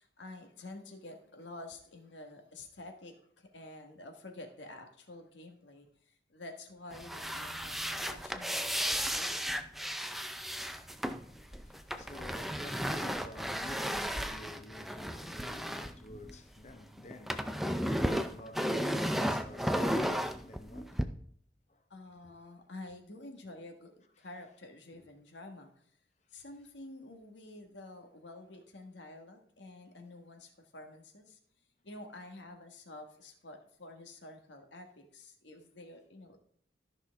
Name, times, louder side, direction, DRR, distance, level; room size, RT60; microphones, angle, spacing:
voice 1, 0.0-9.6 21.9-25.7 26.3-31.4 31.8-36.4, left 2 dB, 85° left, 1.5 m, -49 dB
sound 1, 6.9-16.7 17.0-21.0, equal, ahead, 0.4 m, -34 dB
voice 2, 11.2-21.1 21.7-21.8 24.9-25.1, left 1 dB, 40° left, 0.9 m, -50 dB
13.5 x 5.8 x 3.5 m
head